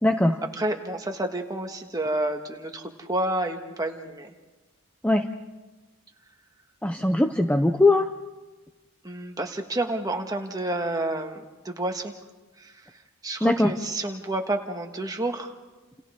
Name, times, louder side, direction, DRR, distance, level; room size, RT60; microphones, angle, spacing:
voice 1, 0.0-0.4 5.0-5.3 6.8-8.1 13.4-13.7, left 2 dB, 5° left, 6 dB, 0.6 m, -21 dB
voice 2, 0.6-4.3 9.0-12.1 12.6-15.5, right 1 dB, 15° right, 4 dB, 1.6 m, -30 dB
29.5 x 29.0 x 3.7 m, 1.2 s
head